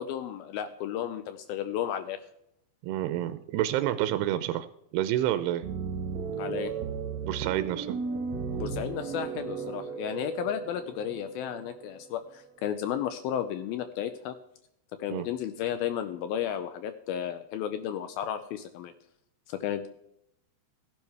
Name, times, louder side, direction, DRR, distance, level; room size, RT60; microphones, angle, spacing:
voice 1, 0.0-2.2 6.4-6.7 8.5-14.4 15.0-18.9 19.5-19.9, left 10 dB, 85° left, 10 dB, 2.2 m, -33 dB
voice 2, 2.8-4.7 4.9-5.7 7.2-8.0 15.1-15.3, right 13 dB, 85° right, 11 dB, 2.6 m, -28 dB
sound 1, 5.6-13.1, right 5 dB, 55° right, 2.2 m, -36 dB
15.0 x 11.0 x 3.3 m, 0.76 s
omnidirectional pair, 4.8 m